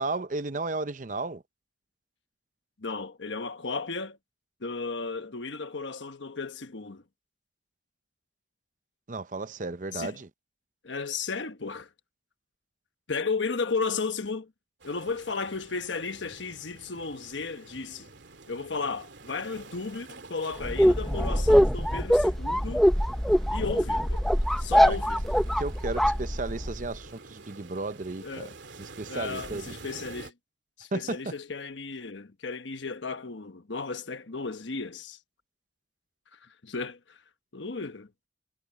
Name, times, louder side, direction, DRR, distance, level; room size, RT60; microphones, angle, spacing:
voice 1, 0.0-1.4 9.1-10.3 24.8-25.0 25.6-28.5 28.8-29.6 30.9-31.2, right 3 dB, 45° right, 0.7 m, -34 dB
voice 2, 2.8-4.2 4.6-7.0 9.9-10.2 10.8-11.9 13.1-14.5 14.8-18.1 18.5-22.9 23.5-24.3 24.6-25.3 28.2-28.5 29.1-30.3 30.8-35.2 36.3-37.2 37.5-38.1, left 4 dB, 90° left, 1.2 m, -34 dB
sound 1, 14.8-30.3, right 3 dB, 85° right, 2.4 m, -48 dB
sound 2, 20.6-26.9, equal, ahead, 0.8 m, -23 dB
head